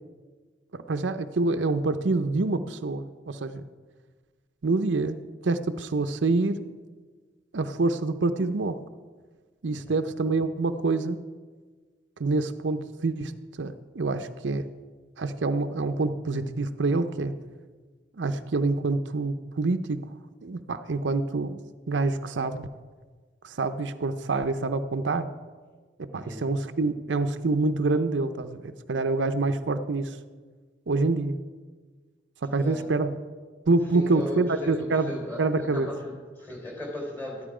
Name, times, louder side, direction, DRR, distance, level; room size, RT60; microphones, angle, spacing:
voice 1, 0.7-3.6 4.6-6.6 7.5-8.8 9.6-11.2 12.2-14.7 15.2-17.3 18.2-20.1 20.4-21.6 21.9-22.7 23.4-25.3 26.0-30.2 30.9-31.4 32.4-33.2 33.7-35.1 35.4-35.9, right 3 dB, 85° right, 10 dB, 0.6 m, -26 dB
voice 2, 26.1-26.5 32.6-32.9 33.9-37.4, left 1 dB, 10° left, -1 dB, 4.0 m, -37 dB
13.5 x 11.5 x 4.9 m, 1.5 s
head